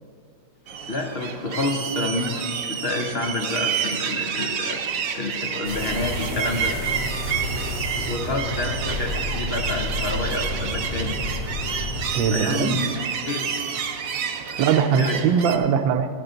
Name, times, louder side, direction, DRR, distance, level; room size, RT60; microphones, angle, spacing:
sound 1, 0.7-15.6, right 7 dB, 60° right, 1.0 m, -29 dB
voice 1, 0.9-2.3 2.7-4.8 5.1-6.8 8.1-11.2 12.3-13.0 13.2-13.5 14.9-15.2, left 2 dB, 55° left, 3 dB, 0.7 m, -28 dB
sound 2, 5.6-12.1, left 1 dB, 80° left, 3.0 m, -30 dB
voice 2, 12.1-12.8 14.6-16.1, right 7 dB, 80° right, 8 dB, 1.3 m, -21 dB
12.0 x 11.5 x 3.9 m, 2.3 s
omnidirectional pair, 2.0 m